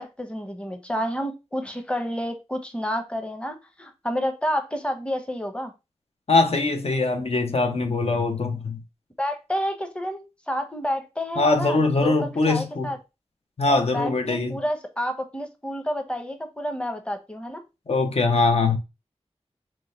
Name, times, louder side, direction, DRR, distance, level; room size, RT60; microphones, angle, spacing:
voice 1, 0.0-5.7 9.2-13.0 13.7-17.6, equal, 10° left, 0.8 m, -30 dB
voice 2, 6.3-8.8 11.4-12.9 13.6-14.6 17.9-18.8, left 3 dB, 60° left, 0.7 m, -22 dB
4.5 x 2.2 x 4.1 m
wide cardioid pair, 45°, 11 cm